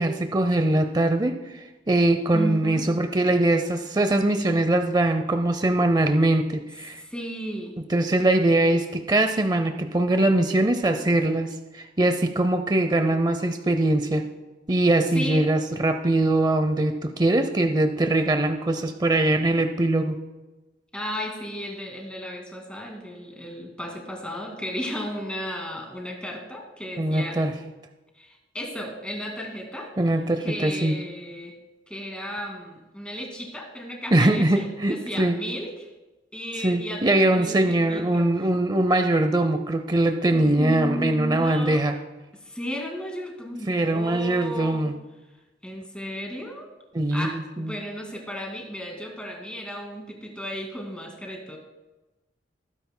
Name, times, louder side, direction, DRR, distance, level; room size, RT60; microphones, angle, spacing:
voice 1, 0.0-7.0 7.9-14.3 14.7-20.2 27.0-27.5 30.0-31.0 34.1-35.4 36.6-41.9 43.7-44.9 46.9-47.7, right 1 dB, 25° right, 7 dB, 0.5 m, -22 dB
voice 2, 2.3-2.9 7.0-7.8 15.1-15.5 20.9-27.4 28.2-29.9 30.4-31.6 31.9-35.9 36.3-38.3 40.5-41.8 42.4-44.9 45.6-46.7 47.1-51.6, equal, 5° left, 1 dB, 2.1 m, -34 dB
19.5 x 9.8 x 2.2 m, 1.1 s
head